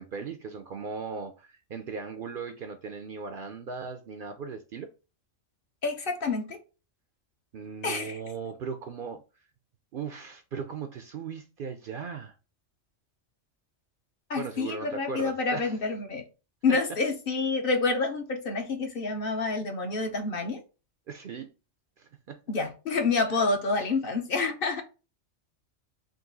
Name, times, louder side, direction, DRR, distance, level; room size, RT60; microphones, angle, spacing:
voice 1, 0.0-4.9 7.5-9.2 9.9-12.4 14.4-15.8 16.7-16.8 21.1-21.5 22.0-22.4 23.3-23.5, right 5 dB, 60° right, 0.6 m, -38 dB
voice 2, 5.8-6.6 7.8-8.2 14.3-16.2 16.6-20.6 22.5-24.8, left 3 dB, 55° left, 0.9 m, -28 dB
3.9 x 2.6 x 3.8 m
omnidirectional pair, 1.2 m